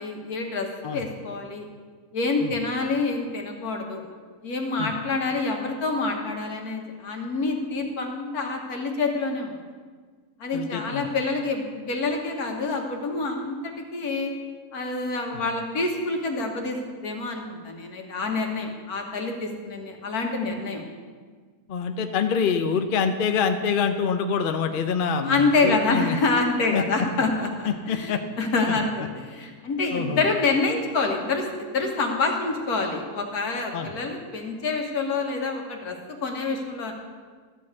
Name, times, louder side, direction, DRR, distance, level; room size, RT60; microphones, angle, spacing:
voice 1, 0.0-1.7 2.1-4.0 4.4-9.5 10.4-14.3 14.7-16.8 17.0-20.8 25.2-28.1 28.4-28.9 29.1-36.0 36.2-36.9, left 3 dB, 70° left, 2 dB, 1.8 m, -27 dB
voice 2, 10.5-11.1 15.3-15.4 21.7-26.2 26.7-26.8 27.7-28.2 28.7-28.8 29.9-30.2 33.7-33.9, left 6 dB, 50° left, 7 dB, 0.6 m, -26 dB
13.0 x 5.4 x 8.0 m, 1.6 s
omnidirectional pair, 1.7 m